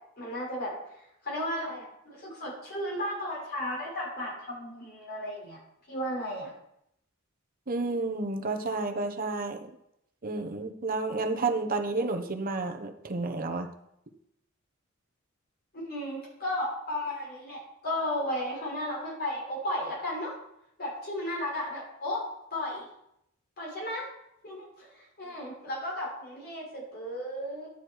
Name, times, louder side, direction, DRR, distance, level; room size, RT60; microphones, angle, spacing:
voice 1, 0.2-0.7 1.2-5.6 5.9-6.5 15.7-20.3 20.8-22.2 22.5-22.9 23.6-24.1 24.4-27.7, left 1 dB, 50° left, -3 dB, 6.0 m, -34 dB
voice 2, 7.7-9.6 10.2-13.7, right 3 dB, 45° right, 5 dB, 1.2 m, -31 dB
12.0 x 9.8 x 4.8 m, 0.78 s
head